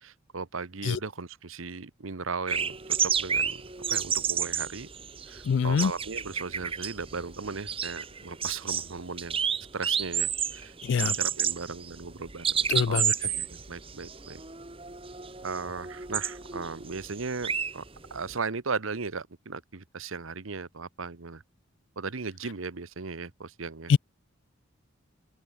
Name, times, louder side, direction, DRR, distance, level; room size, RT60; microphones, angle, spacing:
voice 1, 0.0-3.6 3.9-4.9 5.3-9.4 9.7-14.4 15.4-17.8 18.1-21.4 22.0-23.9, right 4 dB, 80° right, 1.1 m, -37 dB
sound 1, 2.5-18.3, right 7 dB, 25° right, 1.9 m, -31 dB
voice 2, 5.5-5.9 10.8-11.1 12.7-13.1 23.9-24.0, left 6 dB, 60° left, 0.3 m, -24 dB
open air
head